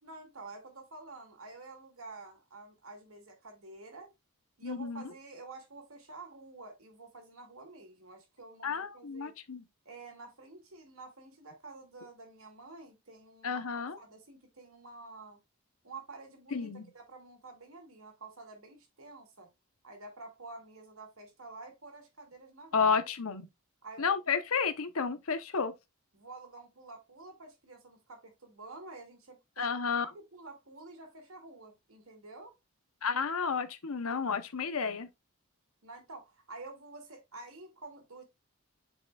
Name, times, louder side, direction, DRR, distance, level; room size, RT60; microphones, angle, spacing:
voice 1, 0.0-4.1 4.6-9.3 9.9-15.4 15.8-16.7 16.9-19.5 19.8-22.9 23.8-24.2 26.1-32.5 35.8-38.2, right 3 dB, 75° right, 2.3 m, -49 dB
voice 2, 4.6-5.0 8.6-9.6 13.4-14.0 16.5-16.9 22.7-23.5 24.0-25.7 29.6-30.1 33.0-35.1, left 5 dB, 80° left, 0.9 m, -31 dB
8.1 x 4.9 x 2.3 m
head